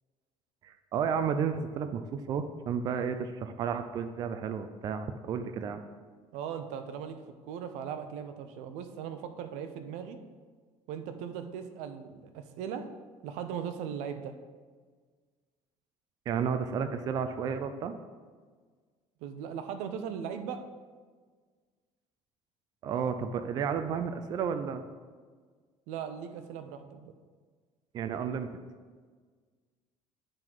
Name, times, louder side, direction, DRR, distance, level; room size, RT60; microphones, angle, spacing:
voice 1, 0.6-5.8 16.3-18.0 22.8-24.8 27.9-28.5, right 7 dB, 35° right, 9 dB, 0.4 m, -32 dB
voice 2, 6.3-10.2 10.9-12.9 13.2-14.3 19.2-20.6 25.9-27.1, right 8 dB, 90° right, 8 dB, 0.6 m, -38 dB
9.6 x 3.8 x 4.6 m, 1.5 s
cardioid pair, 170°, 11 cm